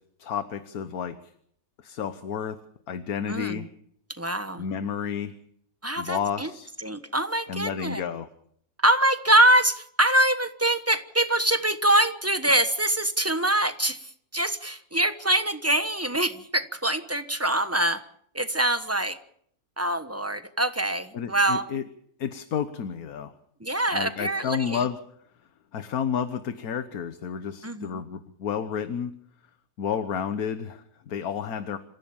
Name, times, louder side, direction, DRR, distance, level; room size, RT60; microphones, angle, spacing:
voice 1, 0.2-1.3 1.8-2.6 2.9-3.7 4.6-5.3 6.0-6.7 7.5-8.3 21.1-21.8 22.2-23.3 23.9-25.0 25.7-29.1 29.8-31.8, left 7 dB, 75° left, 11 dB, 1.6 m, -31 dB
voice 2, 3.3-3.7 4.2-4.6 5.8-6.5 6.8-8.0 8.8-18.0 18.3-19.2 19.8-21.6 23.6-24.8 27.6-28.0, right 1 dB, 10° right, 11 dB, 1.1 m, -24 dB
27.5 x 16.0 x 7.2 m, 0.67 s
omnidirectional pair, 1.6 m